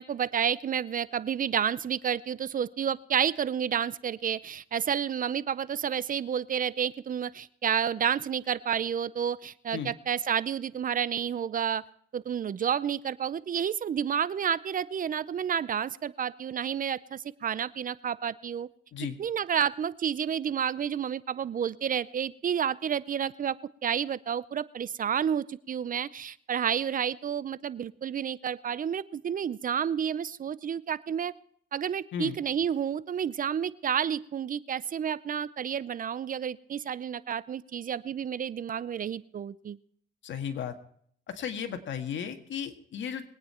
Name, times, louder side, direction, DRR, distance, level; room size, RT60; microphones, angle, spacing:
voice 1, 0.0-11.8 12.1-18.7 19.0-23.6 23.8-31.3 31.7-39.8, right 8 dB, 45° right, 18 dB, 0.6 m, -30 dB
voice 2, 40.2-40.7 41.3-43.3, left 8 dB, 70° left, 7 dB, 1.8 m, -35 dB
22.0 x 9.4 x 4.4 m, 0.63 s
cardioid pair, 90°, 20 cm